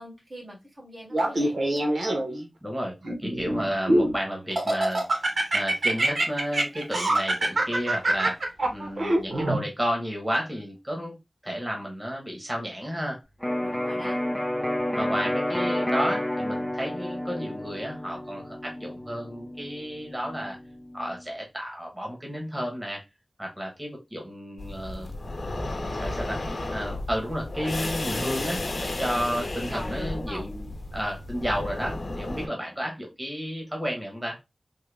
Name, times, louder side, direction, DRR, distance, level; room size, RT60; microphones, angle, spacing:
voice 1, 0.0-1.6 13.6-14.2 29.7-30.5, equal, 65° right, -4 dB, 2.1 m, -41 dB
Laughter, 1.1-2.4 3.0-4.1 4.6-9.6, right 1 dB, 90° right, 0.8 m, -24 dB
voice 2, 2.6-2.9 3.2-5.0 5.5-8.4 8.7-11.1 11.4-13.2 14.9-20.6 20.9-23.0 23.4-25.1 25.9-26.4 26.7-34.4, equal, 15° right, -1 dB, 1.2 m, -32 dB
Electric guitar, 13.4-21.2, left 1 dB, 15° left, 0.6 m, -30 dB
sound 1, 24.6-32.5, left 2 dB, 80° left, 0.7 m, -33 dB
3.7 x 2.1 x 3.3 m, 0.23 s
wide cardioid pair, 60°, 0 cm